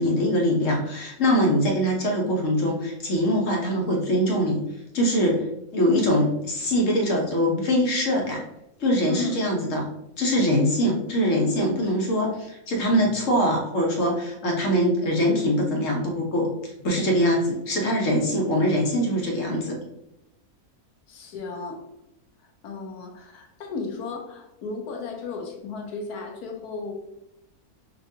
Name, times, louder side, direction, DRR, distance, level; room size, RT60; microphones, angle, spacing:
voice 1, 0.0-4.6 4.9-5.4 5.7-8.4 8.8-9.9 10.2-16.5 16.8-19.8, equal, 60° left, 0 dB, 1.2 m, -23 dB
voice 2, 21.1-21.8 22.6-26.9, left 4 dB, 85° left, 2 dB, 1.3 m, -34 dB
5.7 x 2.6 x 2.7 m, 0.83 s
omnidirectional pair, 1.6 m